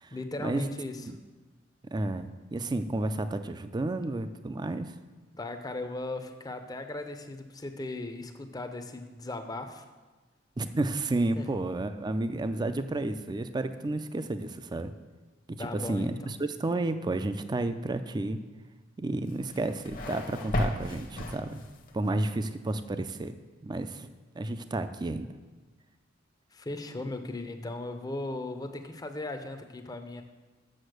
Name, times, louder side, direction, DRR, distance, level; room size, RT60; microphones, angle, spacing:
voice 1, 0.1-1.1 5.3-9.9 11.4-11.6 15.6-16.4 26.5-30.2, left 2 dB, 20° left, 7 dB, 0.6 m, -37 dB
voice 2, 1.9-4.9 10.6-14.9 15.5-18.4 19.0-21.6 21.9-23.3 23.6-24.1 24.4-25.3, right 2 dB, 20° right, 10 dB, 0.4 m, -31 dB
sound 1, 19.3-22.0, left 1 dB, 50° left, 0.9 m, -34 dB
6.9 x 6.4 x 6.5 m, 1.3 s
head